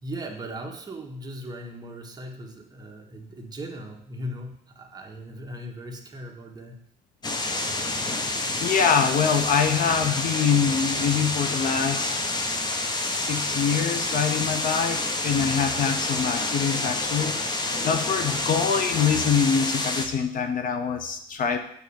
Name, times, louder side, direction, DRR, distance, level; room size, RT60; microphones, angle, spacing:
voice 1, 0.0-6.8, equal, 25° right, 1 dB, 1.5 m, -38 dB
sound 1, 7.2-20.1, left 2 dB, 25° left, 1.1 m, -28 dB
voice 2, 8.6-12.1 12.9-21.6, left 7 dB, 55° left, 7 dB, 0.9 m, -25 dB
8.1 x 4.2 x 7.1 m, 0.69 s
cardioid pair, 110°, 17 cm